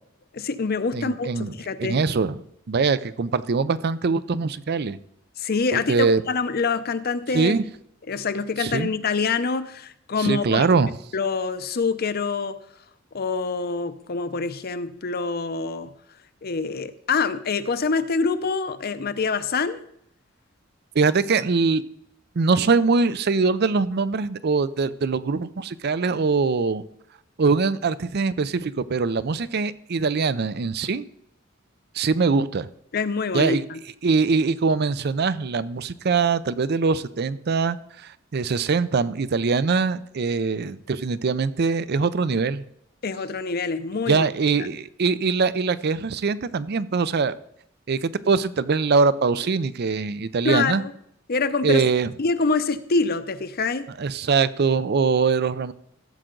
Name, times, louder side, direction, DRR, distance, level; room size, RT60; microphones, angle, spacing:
voice 1, 0.3-2.0 5.4-7.5 8.1-10.7 11.1-12.6 13.1-15.9 16.4-19.8 32.9-33.8 43.0-44.3 50.4-50.9 51.3-51.8 52.2-53.9, left 4 dB, 50° left, 11 dB, 0.7 m, -25 dB
voice 2, 0.9-1.5 1.8-2.4 2.7-5.0 5.7-6.2 7.3-7.6 8.6-8.9 10.2-10.9 21.0-21.8 22.4-26.8 27.4-31.0 32.0-32.7 33.3-33.6 34.0-37.8 38.3-42.6 44.1-47.3 47.9-50.8 51.6-52.1 54.0-55.7, right 4 dB, 55° right, 16 dB, 0.5 m, -22 dB
15.5 x 7.6 x 3.9 m, 0.73 s
head